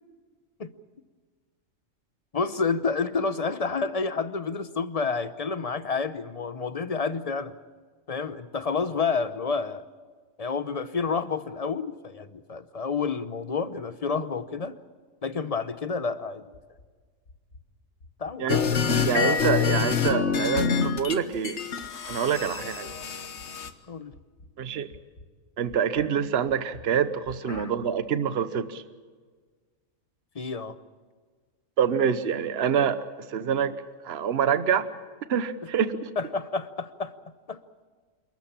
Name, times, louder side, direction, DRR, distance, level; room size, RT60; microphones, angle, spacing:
voice 1, 2.3-7.5 8.1-9.8 10.4-14.8 15.2-16.4 18.2-18.6 23.9-24.1 27.5-27.7 30.3-30.8 36.2-37.1 37.5-37.6, left 4 dB, 35° left, 13 dB, 0.7 m, -29 dB
sound 1, 16.5-16.9 17.3-17.7 18.0-18.3 18.7-19.2 19.5-19.9 20.3-20.6 21.1-21.4 21.8-22.3 22.6-23.0 23.4-23.8 24.1-24.6 24.9-25.3 25.7-26.1 26.5-26.9 27.3-27.7, left 2 dB, 80° left, 2.3 m, -50 dB
sound 2, 18.5-21.2 21.4-23.7, left 6 dB, 60° left, 1.5 m, -26 dB
voice 2, 19.0-21.6 22.1-22.9 24.6-24.9 25.6-28.8 31.8-33.0 33.3-33.7 34.0-34.9 35.3-36.1, right 7 dB, 55° right, 12 dB, 1.1 m, -26 dB
28.5 x 13.5 x 8.8 m, 1.5 s
omnidirectional pair, 1.4 m